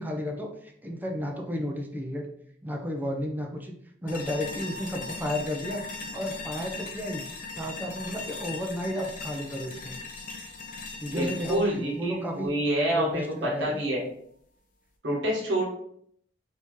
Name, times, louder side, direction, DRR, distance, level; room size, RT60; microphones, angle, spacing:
voice 1, 0.0-2.3 2.6-3.7 4.0-5.8 6.1-7.2 7.5-10.0 11.0-12.5 12.9-13.9, left 1 dB, 10° right, 1 dB, 0.5 m, -32 dB
sound 1, 4.1-13.1, left 3 dB, 45° left, 0.6 m, -39 dB
voice 2, 11.1-14.1 15.0-15.6, right 1 dB, 80° right, -4 dB, 1.0 m, -27 dB
3.5 x 2.7 x 3.1 m, 0.66 s
head